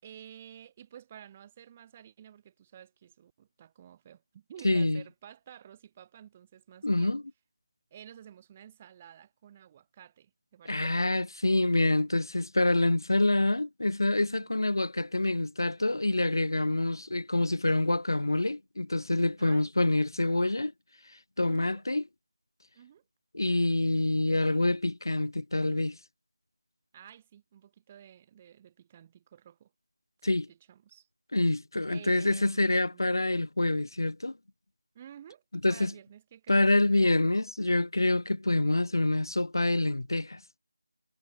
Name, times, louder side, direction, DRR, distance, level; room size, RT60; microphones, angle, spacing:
voice 1, 0.0-7.2 7.9-11.0 14.3-14.7 19.4-19.8 21.5-21.8 22.7-23.0 26.9-29.7 30.2-31.1 31.9-33.0 34.9-35.4 35.7-36.6, right 9 dB, 20° right, 3.4 m, -52 dB
voice 2, 4.6-5.0 6.8-7.2 10.7-20.7 21.4-22.0 23.3-26.0 30.2-30.5 31.3-34.4 35.6-35.9 36.5-40.4, left 2 dB, 65° left, 1.9 m, -26 dB
figure-of-eight pair, 165°, 2 cm